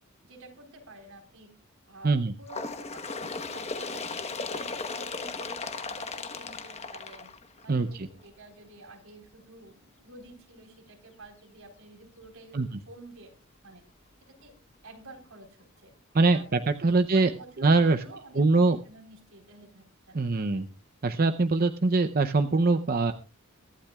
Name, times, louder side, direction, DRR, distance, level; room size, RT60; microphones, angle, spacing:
voice 1, 0.2-1.5 1.9-7.3 7.6-13.3 13.6-13.8 14.4-14.5 14.8-15.9 16.3-20.6, right 2 dB, 75° right, 3 dB, 4.1 m, -50 dB
Bird, 2.5-7.9 8.8-8.9 9.3-9.4 10.3-10.4 11.3-11.4 12.3-12.4, left 4 dB, 30° left, 1.1 m, -36 dB
voice 2, 7.7-8.1 12.5-12.7 16.1-17.3 17.6-18.0 18.4-18.8 20.1-20.6 21.0-23.1, right 3 dB, 45° right, 8 dB, 0.7 m, -23 dB
23.0 x 12.0 x 2.4 m, 0.33 s
head